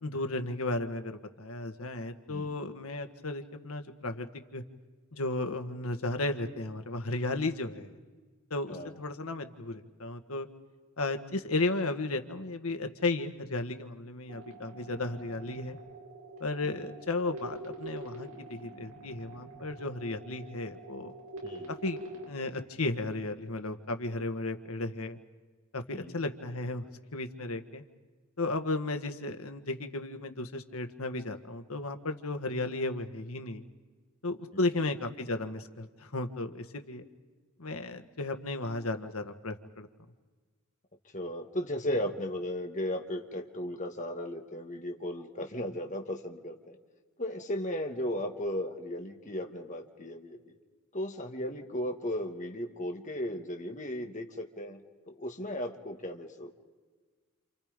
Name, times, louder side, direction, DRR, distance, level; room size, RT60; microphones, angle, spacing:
voice 1, 0.0-4.3 4.5-4.6 5.1-7.9 8.5-10.5 11.0-15.8 16.4-21.1 21.8-22.0 22.3-25.2 25.7-26.8 27.1-27.8 28.4-33.6 34.2-37.0 37.6-39.9, left 2 dB, 90° left, 7 dB, 1.6 m, -34 dB
sound 1, 14.3-22.3, right 2 dB, 70° right, 4.9 m, -45 dB
voice 2, 34.5-34.9 41.1-46.8 47.2-50.5 50.9-56.6, left 1 dB, 35° left, 3 dB, 2.0 m, -36 dB
28.5 x 28.5 x 5.3 m, 1.4 s
head